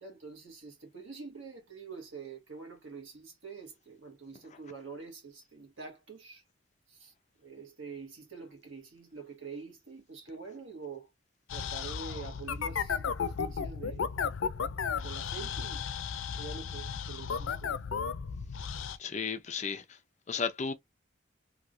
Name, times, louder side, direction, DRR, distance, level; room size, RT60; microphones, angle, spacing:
voice 1, 0.0-6.4 6.9-7.1 7.4-11.1 11.5-14.1 15.0-15.8 16.4-17.7, right 5 dB, 85° right, 1.5 m, -46 dB
sound 1, 11.5-19.0, left 6 dB, 90° left, 0.5 m, -34 dB
voice 2, 19.0-20.0 20.3-20.7, left 5 dB, 35° left, 0.5 m, -34 dB
3.2 x 2.8 x 2.5 m
head